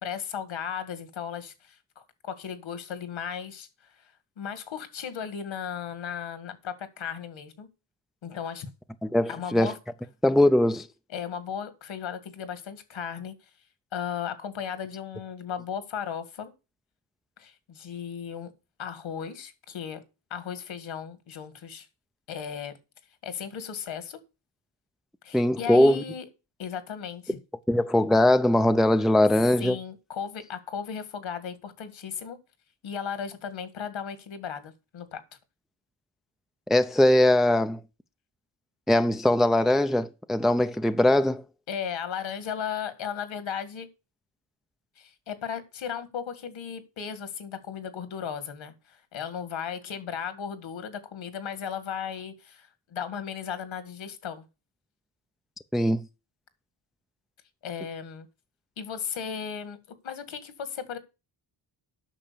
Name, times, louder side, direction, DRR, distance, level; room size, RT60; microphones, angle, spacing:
voice 1, 0.0-3.7 4.4-7.7 8.2-8.7 9.3-9.8 11.1-13.3 13.9-16.5 17.4-18.5 18.8-20.0 20.3-21.9 22.3-22.7 23.2-24.2 25.2-26.3 26.6-27.4 29.6-32.4 32.8-35.2 41.7-43.9 45.0-54.5 57.6-58.3 58.8-59.8 60.0-61.0, left 7 dB, 70° left, 2.0 m, -36 dB
voice 2, 9.0-9.7 10.2-10.9 25.3-26.0 27.7-29.8 36.7-37.8 38.9-41.4 55.7-56.1, left 1 dB, ahead, 0.6 m, -21 dB
9.0 x 6.0 x 6.8 m
cardioid pair, 80°, 48 cm